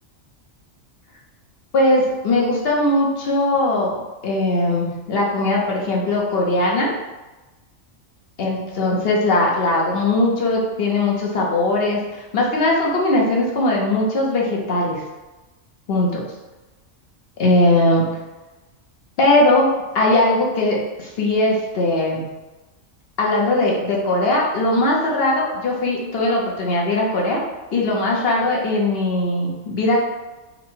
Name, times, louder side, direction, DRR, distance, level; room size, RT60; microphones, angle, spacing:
voice 1, 1.7-4.0 4.2-6.9 8.4-15.0 15.9-16.2 17.4-18.0 19.2-22.3 23.2-27.4 27.7-30.1, left 2 dB, 55° left, -2 dB, 1.0 m, -19 dB
3.9 x 2.2 x 4.5 m, 1.1 s
omnidirectional pair, 1.3 m